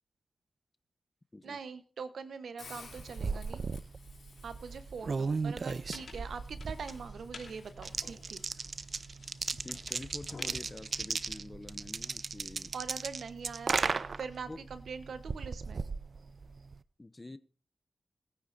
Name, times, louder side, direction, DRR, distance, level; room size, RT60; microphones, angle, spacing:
voice 1, 1.4-3.6 4.4-8.4 12.7-15.8, right 5 dB, 85° right, 11 dB, 1.0 m, -43 dB
Hiss, 2.6-8.6, left 5 dB, 90° left, 2.8 m, -57 dB
sound 1, 2.7-16.8, right 4 dB, 65° right, 0.5 m, -37 dB
sound 2, 5.3-11.7, left 3 dB, 70° left, 2.7 m, -53 dB
voice 2, 9.5-12.7 14.5-14.6 17.0-17.4, left 2 dB, 30° left, 13 dB, 0.7 m, -47 dB
21.0 x 9.5 x 2.6 m, 0.38 s
cardioid pair, 45°, 0 cm